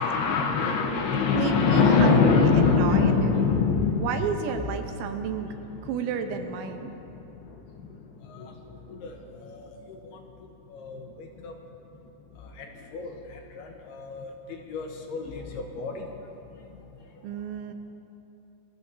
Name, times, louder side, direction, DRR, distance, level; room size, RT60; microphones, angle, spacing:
voice 1, 0.0-5.9 6.6-10.2 10.7-11.5 12.4-16.1, left 5 dB, 75° left, 2 dB, 2.7 m, -26 dB
voice 2, 1.3-3.1 3.9-5.5 5.9-6.9 17.2-17.7, right 7 dB, 80° right, 6 dB, 3.3 m, -31 dB
25.5 x 20.5 x 2.8 m, 2.9 s
omnidirectional pair, 5.3 m